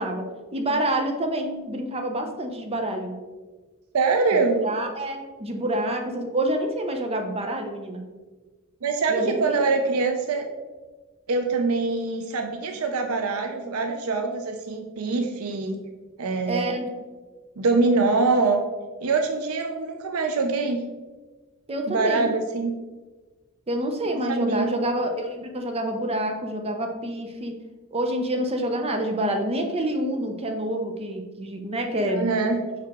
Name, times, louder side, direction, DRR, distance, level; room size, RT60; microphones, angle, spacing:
voice 1, 0.0-3.2 4.6-8.0 9.1-9.5 16.5-16.9 21.7-22.3 23.7-27.6 27.9-32.6, right 1 dB, 30° right, 4 dB, 0.6 m, -27 dB
voice 2, 3.9-4.6 8.8-10.5 11.3-15.8 16.2-16.8 17.6-18.6 19.0-20.8 21.9-22.7 24.3-24.7 32.1-32.6, right 3 dB, 80° right, 4 dB, 0.5 m, -24 dB
5.8 x 4.8 x 3.5 m, 1.3 s
head